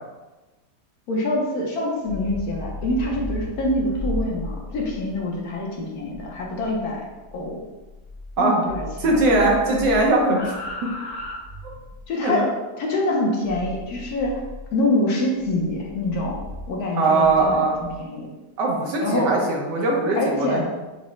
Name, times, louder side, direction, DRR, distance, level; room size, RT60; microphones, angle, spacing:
voice 1, 1.1-7.0 7.3-7.6 8.4-9.2 12.1-12.5 12.8-14.4 14.7-16.4 16.7-17.6 18.0-18.3 19.0-19.3 20.2-20.6, left 1 dB, 65° left, -2 dB, 1.2 m, -25 dB
sound 1, 1.9-8.4 8.6-12.0 13.4-14.7 15.4-18.0, left 2 dB, 45° left, 0.5 m, -36 dB
voice 2, 9.0-10.5 10.8-10.9 12.2-12.5 17.0-17.8 18.6-20.6, right 2 dB, 80° right, -1 dB, 1.5 m, -20 dB
6.0 x 2.1 x 3.0 m, 1.1 s
omnidirectional pair, 1.8 m